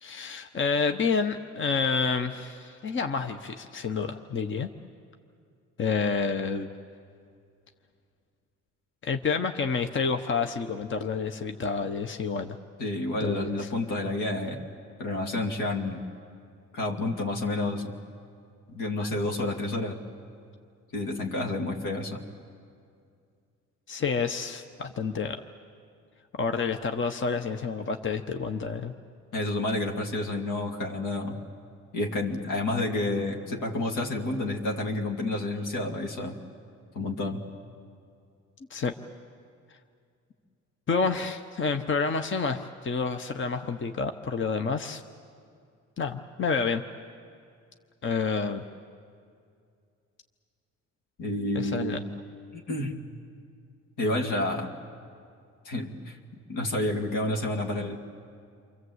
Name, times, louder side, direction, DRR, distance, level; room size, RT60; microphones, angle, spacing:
voice 1, 0.0-4.7 5.8-6.7 9.0-12.6 13.2-13.7 19.0-19.1 23.9-25.4 26.3-28.9 38.7-38.9 40.9-45.0 46.0-46.8 48.0-48.6 51.5-52.0, left 5 dB, 40° left, 6 dB, 1.1 m, -29 dB
voice 2, 12.8-14.7 15.0-16.0 16.7-18.0 18.7-20.0 20.9-22.2 29.3-31.4 31.9-36.4 36.9-37.4 51.2-52.1 52.5-53.0 54.0-54.7 55.6-56.2 56.5-58.0, left 2 dB, 80° left, 1 dB, 2.8 m, -30 dB
29.0 x 24.0 x 8.1 m, 2.3 s
cardioid pair, 90°, 30 cm